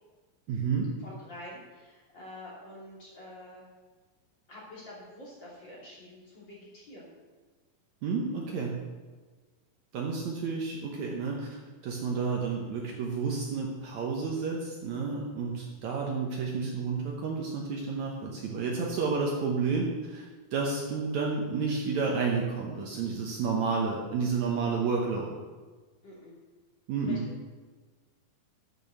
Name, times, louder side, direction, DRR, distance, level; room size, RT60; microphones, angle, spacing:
voice 1, 0.5-0.9 8.0-8.8 9.9-11.5 11.8-20.3 20.5-25.3 26.9-27.2, right 4 dB, 65° right, -1 dB, 2.1 m, -30 dB
voice 2, 1.0-3.6 4.5-7.1 24.6-24.9 26.0-26.3 27.1-27.3, left 1 dB, 35° left, -6 dB, 3.1 m, -47 dB
8.4 x 6.9 x 6.8 m, 1.4 s
omnidirectional pair, 4.0 m